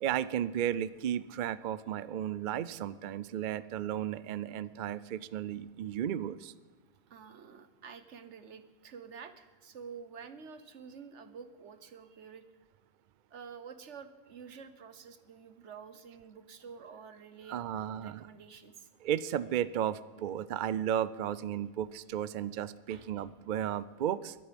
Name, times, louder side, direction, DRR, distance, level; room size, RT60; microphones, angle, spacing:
voice 1, 0.0-6.5 17.5-18.3 19.0-24.4, right 10 dB, 55° right, 17 dB, 0.5 m, -34 dB
voice 2, 7.1-12.4 13.3-18.9 22.9-23.2, right 6 dB, 80° right, 11 dB, 1.4 m, -49 dB
22.5 x 8.7 x 5.2 m, 1.4 s
omnidirectional pair, 1.2 m